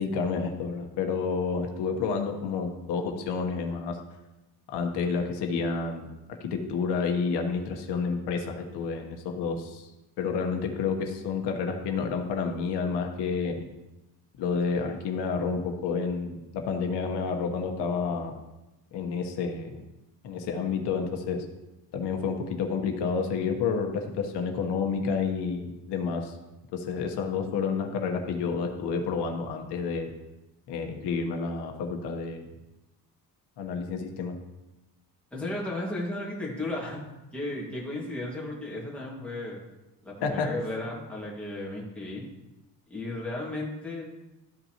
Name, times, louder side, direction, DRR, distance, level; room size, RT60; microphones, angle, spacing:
voice 1, 0.0-4.0 4.7-9.9 10.2-13.6 14.4-18.3 18.9-19.8 20.2-21.4 21.9-26.3 26.7-30.1 30.7-32.5 33.6-34.4 40.2-40.5, left 5 dB, 80° left, 4 dB, 1.2 m, -30 dB
voice 2, 35.3-37.0 37.3-39.6 40.0-42.2 42.9-44.1, left 1 dB, 5° left, -5 dB, 1.9 m, -34 dB
13.5 x 5.5 x 2.9 m, 0.99 s
cardioid pair, 160°, 40 cm